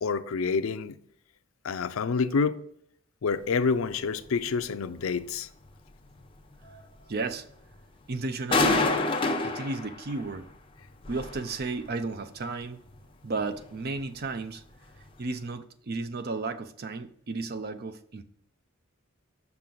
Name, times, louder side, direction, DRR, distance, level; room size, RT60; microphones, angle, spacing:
voice 1, 0.0-1.0 1.6-2.6 3.2-5.5, left 5 dB, 85° left, 0.4 m, -28 dB
sound 1, 3.6-3.7 4.1-4.3 4.6-4.7 5.1-5.2 5.6-5.7 6.1-6.2 6.6-7.3 7.7-7.9 8.2-8.3 8.5-10.5 10.8-12.0 12.4-12.5 12.9-13.0 13.4-14.1 14.4-14.6 15.0-15.1 15.4-15.5, left 3 dB, 25° left, 0.7 m, -29 dB
voice 2, 7.1-7.4 8.1-9.0 9.4-10.5 11.1-12.8 13.2-14.6 15.2-18.2, right 3 dB, 50° right, 0.5 m, -33 dB
5.9 x 5.7 x 3.8 m
head